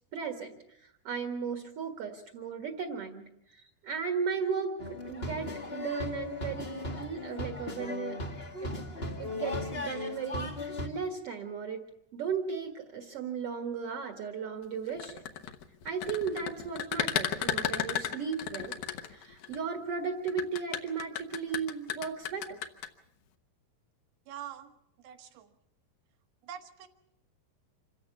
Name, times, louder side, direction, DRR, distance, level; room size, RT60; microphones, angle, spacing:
voice 1, 0.1-0.6 1.0-8.2 8.6-8.8 9.2-11.8 12.1-15.2 15.8-18.8 19.1-22.6, right 6 dB, 50° right, 6 dB, 1.9 m, -36 dB
sound 1, 4.8-10.9, left 2 dB, 50° left, 0.7 m, -37 dB
sound 2, 14.9-19.6 20.3-22.9, left 10 dB, 65° left, 2.1 m, -33 dB
voice 2, 24.3-24.7 25.0-25.5 26.4-26.9, right 10 dB, 75° right, 7 dB, 3.1 m, -44 dB
26.5 x 15.5 x 7.1 m, 0.80 s
omnidirectional pair, 4.6 m